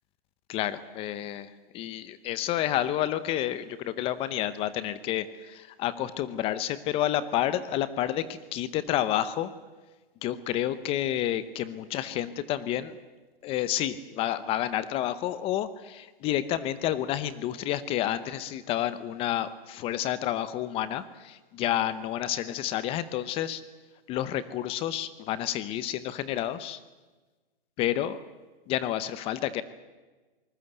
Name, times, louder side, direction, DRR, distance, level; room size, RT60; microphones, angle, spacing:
voice 1, 0.5-9.5 10.2-13.0 13.4-23.6 24.1-26.8 27.8-28.2 28.7-29.6, left 12 dB, 20° left, 15 dB, 0.8 m, -30 dB
26.0 x 20.0 x 8.1 m, 1.2 s
hypercardioid pair, 145°, 29 cm